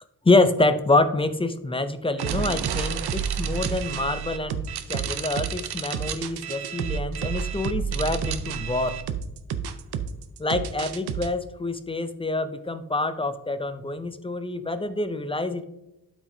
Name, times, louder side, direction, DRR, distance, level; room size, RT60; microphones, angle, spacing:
voice 1, 0.2-4.6 4.9-8.9 10.4-15.6, left 2 dB, 15° left, 10 dB, 0.4 m, -26 dB
sound 1, 2.2-11.3, right 7 dB, 80° right, 0.7 m, -30 dB
12.0 x 5.0 x 2.7 m, 0.89 s
wide cardioid pair, 165°, 39 cm